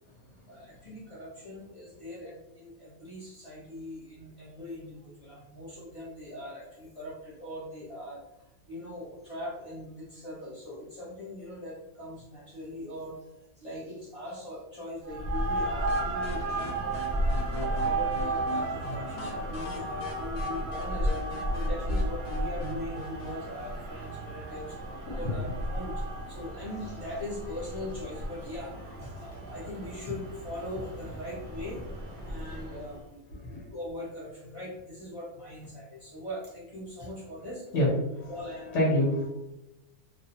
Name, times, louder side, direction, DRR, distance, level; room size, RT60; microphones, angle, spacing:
voice 1, 0.5-17.0 17.5-21.1 21.5-26.0 26.3-31.8 32.2-33.2 33.7-37.6 38.3-38.7, left 1 dB, 30° left, -8 dB, 0.8 m, -41 dB
sound 1, 15.0-33.0, right 1 dB, 60° right, 0.8 m, -33 dB
sound 2, 15.9-23.4, left 1 dB, 80° left, 1.1 m, -41 dB
voice 2, 37.7-38.3 38.7-39.3, left 1 dB, 60° left, -4 dB, 0.9 m, -26 dB
2.4 x 2.1 x 2.7 m, 0.92 s
omnidirectional pair, 1.6 m